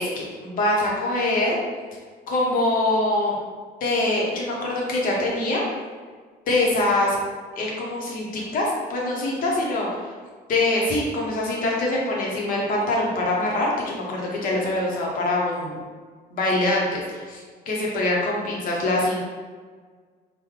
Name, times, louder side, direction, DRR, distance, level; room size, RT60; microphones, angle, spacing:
voice 1, 0.0-1.6 2.3-3.4 3.8-5.6 6.5-7.2 7.6-10.1 10.5-15.8 16.3-17.4 17.7-19.3, left 2 dB, 55° left, -3 dB, 0.8 m, -24 dB
3.5 x 2.2 x 3.2 m, 1.6 s
cardioid pair, 155°, 17 cm